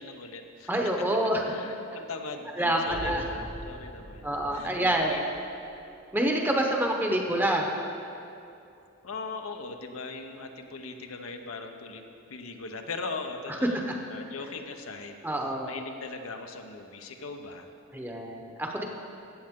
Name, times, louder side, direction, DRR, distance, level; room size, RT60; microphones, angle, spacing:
voice 1, 0.0-0.7 1.4-5.2 9.0-12.0 12.3-15.2 15.7-17.7, left 3 dB, 90° left, 5 dB, 0.8 m, -40 dB
voice 2, 0.7-1.4 2.6-3.2 4.2-5.1 6.1-7.7 15.2-15.7 17.9-18.8, right 1 dB, 10° right, 1 dB, 0.8 m, -27 dB
Boom, 2.9-5.8, equal, 40° right, 0.9 m, -43 dB
15.0 x 7.7 x 3.6 m, 2.7 s
head